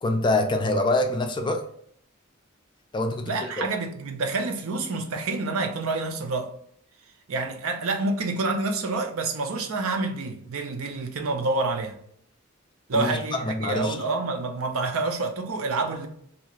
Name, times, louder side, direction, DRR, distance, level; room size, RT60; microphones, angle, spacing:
voice 1, 0.0-1.6 2.9-3.7 12.9-14.0, left 2 dB, 20° left, 0.3 m, -25 dB
voice 2, 3.2-6.5 7.3-12.0 12.9-16.1, right 3 dB, 85° right, 0.5 m, -28 dB
2.7 x 2.4 x 3.0 m
head